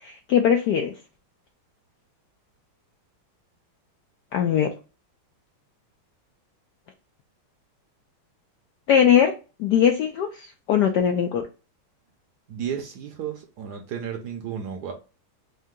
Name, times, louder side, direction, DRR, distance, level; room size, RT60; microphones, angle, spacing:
voice 1, 0.0-0.9 4.3-4.7 8.9-9.3 9.6-11.5, left 8 dB, 80° left, 4 dB, 0.9 m, -20 dB
voice 2, 12.5-14.9, right 8 dB, 70° right, 3 dB, 1.0 m, -33 dB
3.8 x 2.7 x 3.5 m, 0.32 s
omnidirectional pair, 2.3 m